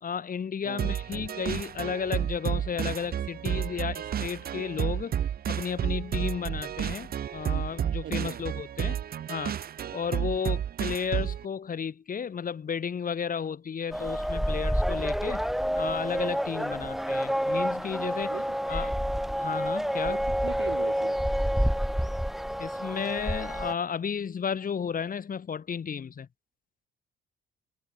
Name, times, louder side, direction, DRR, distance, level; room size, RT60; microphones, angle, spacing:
voice 1, 0.0-5.1 5.5-9.0 9.3-9.6 9.9-15.4 15.7-18.4 18.7-18.9 19.4-20.2 22.6-26.3, left 7 dB, 45° left, 2.5 m, -33 dB
sound 1, 0.8-11.4, right 9 dB, 50° right, 0.7 m, -31 dB
voice 2, 8.0-8.5 16.6-17.2 18.3-18.6 20.0-21.2, right 11 dB, 70° right, 3.2 m, -42 dB
sound 2, 13.9-23.7, equal, ahead, 3.6 m, -28 dB
cardioid pair, 90°, 20 cm